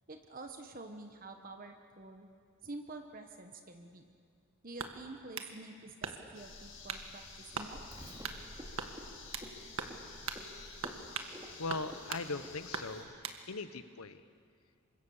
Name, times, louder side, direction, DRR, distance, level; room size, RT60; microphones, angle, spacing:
voice 1, 0.1-2.3 2.6-4.1 4.6-7.8, right 2 dB, 40° right, 5 dB, 1.2 m, -48 dB
sound 1, 4.8-5.5 6.0-6.4 6.9-7.1 7.5-7.7 8.2-8.4 8.8-9.5 9.8-10.0 10.3-10.4 10.8-11.3 11.7-12.3 12.7-13.4, right 5 dB, 70° right, 1.8 m, -40 dB
sound 2, 6.3-13.0, left 3 dB, 60° left, 6.0 m, -51 dB
Frog, 7.9-13.1, equal, 20° right, 2.6 m, -53 dB
voice 2, 11.6-13.1 13.5-14.2, left 3 dB, 80° left, 12 dB, 1.1 m, -39 dB
28.5 x 25.0 x 7.2 m, 2.3 s
head